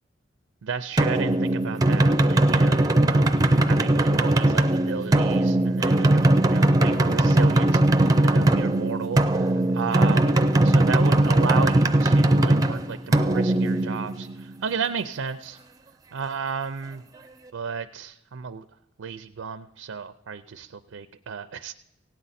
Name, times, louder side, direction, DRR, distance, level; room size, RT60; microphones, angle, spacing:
voice 1, 0.6-15.6 16.1-17.0 17.5-18.6 19.0-21.7, right 6 dB, 85° right, 9 dB, 0.4 m, -33 dB
sound 1, 1.0-14.5, right 1 dB, 20° right, 0.5 m, -20 dB
16.5 x 9.0 x 4.2 m, 0.92 s
head